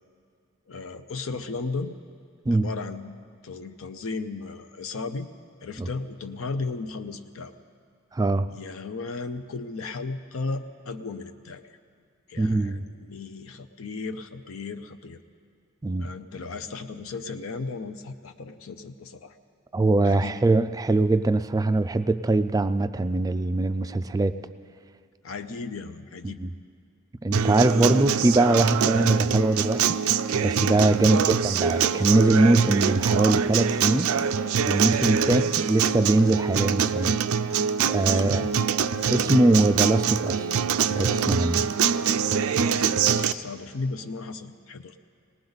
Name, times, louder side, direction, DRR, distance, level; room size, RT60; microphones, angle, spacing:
voice 1, 0.7-2.0 2.5-3.2 3.4-5.3 5.6-7.5 8.5-11.6 12.3-15.2 16.0-19.3 20.0-20.4 25.2-26.4 31.1-31.3 35.0-35.4 38.1-38.5 42.5-44.9, left 3 dB, 70° left, 8 dB, 0.6 m, -35 dB
voice 2, 8.1-8.5 12.4-12.8 15.8-16.1 19.7-24.3 26.4-26.5 27.2-30.0 30.4-34.1 34.6-37.2 37.4-38.5 39.1-40.5 40.9-41.6, right 2 dB, 15° right, 11 dB, 0.3 m, -22 dB
Acoustic guitar, 27.3-43.3, right 7 dB, 85° right, 0.4 m, -24 dB
19.5 x 19.0 x 4.0 m, 2.3 s
head